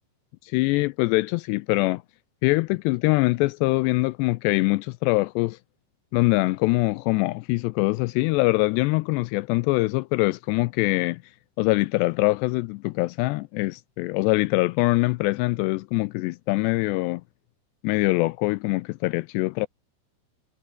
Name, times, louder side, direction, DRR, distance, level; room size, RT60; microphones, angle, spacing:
voice 1, 0.4-2.0 2.4-5.6 6.1-11.2 11.6-17.2 17.8-19.7, left 23 dB, 85° left, 2.4 m, -23 dB
omnidirectional pair, 5.4 m